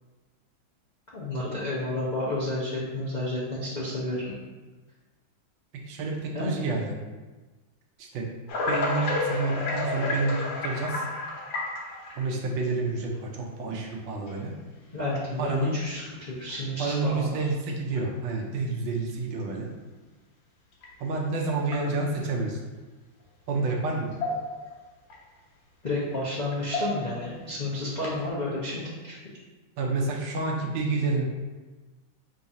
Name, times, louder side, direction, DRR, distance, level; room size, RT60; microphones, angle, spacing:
voice 1, 1.1-4.3 6.3-6.6 14.9-17.4 25.8-29.2, left 1 dB, 90° left, -9 dB, 0.4 m, -31 dB
voice 2, 5.9-7.0 8.0-8.3 8.7-11.0 12.1-14.5 15.4-15.8 16.8-19.7 21.0-22.6 23.5-24.2 29.8-31.2, right 3 dB, 70° right, 0 dB, 1.3 m, -29 dB
sound 1, 8.5-12.3 13.1-13.2 14.3-14.4 15.1-15.4 15.8-15.9 16.4-16.6 17.9-18.0 20.8-20.9 21.6-22.3 23.7-23.8 24.1-24.7 25.1-25.2 26.5-27.2 28.0-28.3, left 2 dB, 70° left, 1.5 m, -31 dB
3.8 x 2.7 x 4.7 m, 1.2 s
omnidirectional pair, 2.3 m